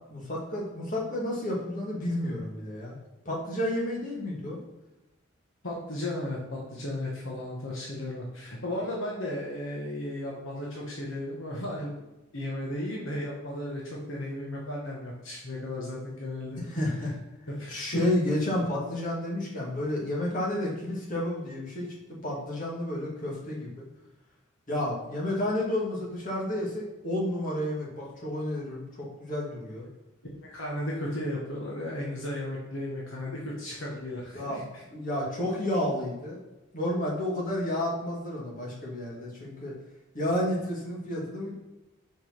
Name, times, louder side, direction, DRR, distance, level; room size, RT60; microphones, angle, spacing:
voice 1, 0.1-3.0 3.3-4.6 16.6-17.1 17.7-21.9 22.2-23.8 24.7-29.9 34.3-36.4 36.7-39.7 40.1-41.5, left 1 dB, 40° left, -4 dB, 2.2 m, -31 dB
voice 2, 5.6-12.1 12.3-16.6 17.6-18.0 30.4-34.8, left 1 dB, 70° left, -3 dB, 1.4 m, -35 dB
5.2 x 5.1 x 6.0 m, 1.0 s
head